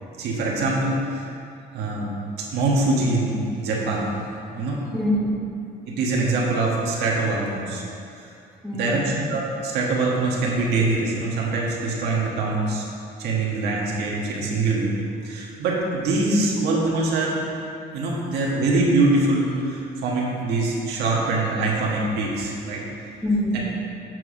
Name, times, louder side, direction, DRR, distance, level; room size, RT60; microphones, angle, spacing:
voice 1, 0.2-1.2 1.7-2.1 2.4-4.1 4.5-4.8 5.9-7.8 8.2-8.3 8.7-12.9 13.2-14.9 15.2-17.4 17.9-22.8, right 2 dB, 75° right, -3 dB, 1.5 m, -23 dB
voice 2, 4.9-5.4 8.6-9.1 23.2-23.6, left 1 dB, ahead, -5 dB, 1.3 m, -25 dB
7.7 x 4.8 x 5.0 m, 2.6 s
cardioid pair, 110°, 17 cm